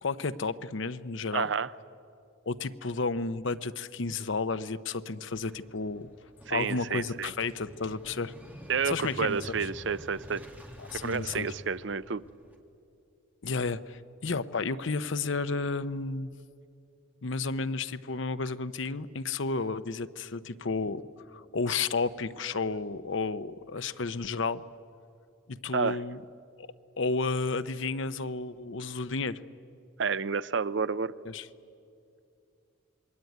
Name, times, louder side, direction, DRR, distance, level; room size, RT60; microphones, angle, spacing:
voice 1, 0.0-1.5 2.5-6.1 6.5-8.3 8.8-9.4 10.8-11.5 13.4-16.3 17.2-21.0 21.3-24.6 25.5-26.2 26.6-26.7 27.0-29.4 31.2-31.5, left 4 dB, 65° left, 13 dB, 0.8 m, -32 dB
voice 2, 1.3-1.7 6.5-7.3 8.7-10.4 10.9-12.2 25.7-26.0 30.0-31.1, right 5 dB, 60° right, 15 dB, 0.6 m, -30 dB
Motorcycle / Engine starting, 5.3-12.6, equal, 10° right, 2.0 m, -48 dB
27.0 x 22.0 x 9.3 m, 2.6 s
head